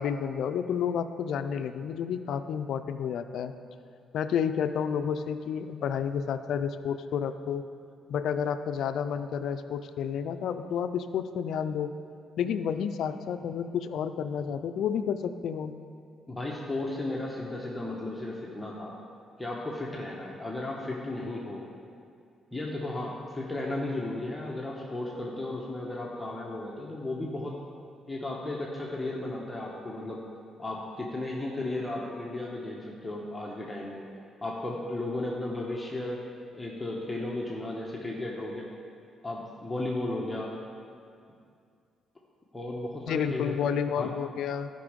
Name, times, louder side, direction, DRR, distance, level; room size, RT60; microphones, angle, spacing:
voice 1, 0.0-3.5 4.1-7.6 8.1-11.9 12.4-15.7 43.1-44.7, left 7 dB, 75° left, 9 dB, 0.4 m, -30 dB
voice 2, 16.3-19.0 19.4-21.6 22.5-27.6 28.1-30.2 30.6-34.1 34.4-36.2 36.5-38.7 39.2-40.6 42.5-43.6 43.9-44.1, left 2 dB, 10° left, -3 dB, 1.1 m, -34 dB
12.5 x 5.4 x 5.1 m, 2.4 s
cardioid pair, 90°, 0 cm